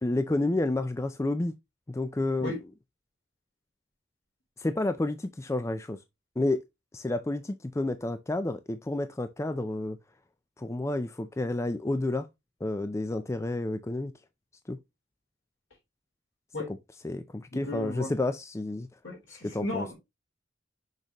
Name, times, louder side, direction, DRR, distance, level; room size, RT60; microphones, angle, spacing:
voice 1, 0.0-1.5 1.9-2.5 4.6-6.0 6.4-6.6 6.9-10.0 10.6-12.3 12.6-14.1 14.7-14.8 16.7-16.8 17.0-18.9 19.3-19.9, left 2 dB, 15° left, 0.4 m, -30 dB
voice 2, 17.5-18.1 19.0-19.9, left 2 dB, 65° left, 3.5 m, -35 dB
6.5 x 5.1 x 2.9 m
head